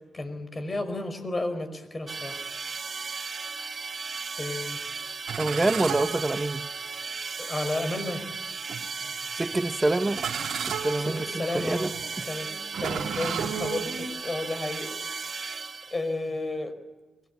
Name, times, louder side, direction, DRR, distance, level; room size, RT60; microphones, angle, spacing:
voice 1, 0.1-2.5 4.4-4.8 7.4-8.3 11.0-11.9 12.2-12.5 12.8-14.9 15.3-15.6 15.9-16.8, left 2 dB, 35° left, 5.4 m, -32 dB
sound 1, 2.1-16.2, right 4 dB, 50° right, 1.7 m, -36 dB
sound 2, 5.3-6.9 7.7-7.9 8.7-9.2 10.0-14.1, right 7 dB, 75° right, 2.6 m, -34 dB
voice 2, 5.4-6.7 9.3-10.2 10.6-12.3, right 2 dB, 25° right, 0.7 m, -27 dB
24.5 x 18.5 x 8.4 m
supercardioid pair, 55°, 0 cm